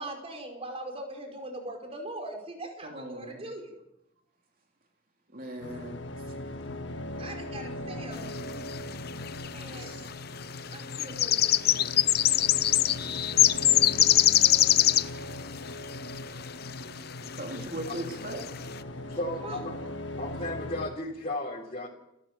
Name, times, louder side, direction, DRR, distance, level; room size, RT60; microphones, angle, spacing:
voice 1, 0.0-3.7 7.2-8.3 9.5-10.0 10.7-12.0 19.4-19.6, right 1 dB, 30° right, 3 dB, 5.3 m, -41 dB
voice 2, 2.8-3.5 5.3-6.0 9.8-10.0 17.3-18.4, right 1 dB, 50° right, 2 dB, 3.1 m, -38 dB
sound 1, 5.6-20.9, left 1 dB, 75° left, 1.6 m, -39 dB
sound 2, 8.8-8.9 9.1-9.7 10.5-15.2 16.1-16.2 16.7-16.8 17.3-17.6 18.0-18.1 18.3-18.6, left 13 dB, 55° left, 0.7 m, -22 dB
voice 3, 16.8-17.4 17.9-18.0 18.6-19.7 20.2-21.9, left 1 dB, 35° left, -4 dB, 3.9 m, -36 dB
30.0 x 13.0 x 7.5 m, 0.84 s
head